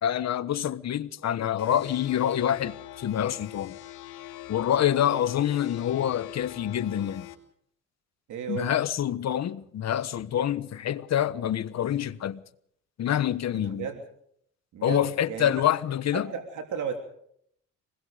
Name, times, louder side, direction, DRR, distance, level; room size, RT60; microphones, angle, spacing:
voice 1, 0.0-3.8 4.5-7.3 8.5-12.4 13.0-13.9 14.8-16.3, left 10 dB, 60° left, 1.3 m, -26 dB
sound 1, 1.6-7.3, left 14 dB, 85° left, 2.7 m, -44 dB
voice 2, 8.3-8.7 13.5-14.0 14.7-15.7 16.1-17.0, right 7 dB, 75° right, 3.2 m, -34 dB
26.0 x 20.5 x 5.1 m
cardioid pair, 90°, 30 cm